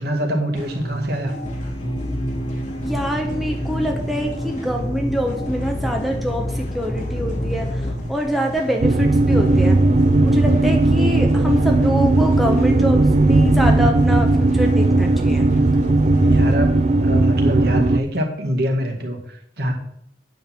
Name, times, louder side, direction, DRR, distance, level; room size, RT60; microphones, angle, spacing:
voice 1, 0.0-1.3 16.2-16.7 17.0-19.7, equal, 60° right, 1 dB, 2.0 m, -24 dB
sound 1, 0.5-16.5, right 1 dB, 40° left, 2.5 m, -31 dB
sound 2, 1.4-8.0, left 1 dB, 25° left, 0.7 m, -29 dB
voice 2, 2.8-9.8 10.2-15.5, equal, ahead, 1 dB, 1.0 m, -25 dB
sound 3, 8.8-18.0, right 2 dB, 40° right, 0.4 m, -16 dB
9.1 x 5.4 x 7.6 m, 0.72 s
head